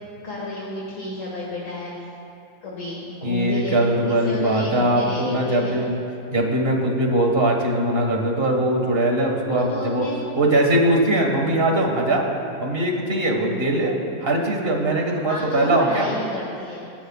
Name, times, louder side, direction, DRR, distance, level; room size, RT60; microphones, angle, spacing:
voice 1, 0.2-2.1 2.6-3.8 4.1-5.8 9.7-10.2 15.3-16.9, left 2 dB, 60° left, -4 dB, 2.1 m, -31 dB
voice 2, 3.2-6.0 6.3-10.1 10.4-12.2 12.6-16.1, right 1 dB, 40° right, 1 dB, 1.8 m, -21 dB
26.0 x 11.0 x 2.4 m, 2.6 s
omnidirectional pair, 1.6 m